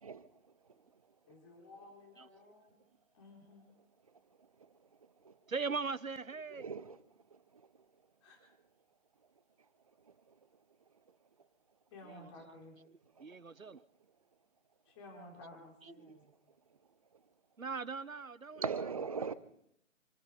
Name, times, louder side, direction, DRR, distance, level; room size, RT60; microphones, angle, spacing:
voice 1, 1.3-2.8 3.1-3.7 8.2-8.4 11.9-12.8 14.8-16.3, left 2 dB, 20° left, 4.3 m, -54 dB
voice 2, 4.4-4.9 5.2-5.4 6.5-7.0 7.3-7.7 10.0-10.3 13.2-13.4 18.6-19.3, right 5 dB, 25° right, 0.7 m, -41 dB
voice 3, 5.5-6.7 12.0-12.3 12.9-13.8 15.8-16.2 17.6-18.6, right 4 dB, 90° right, 1.0 m, -40 dB
27.5 x 9.7 x 5.2 m
figure-of-eight pair, 145°, 40 cm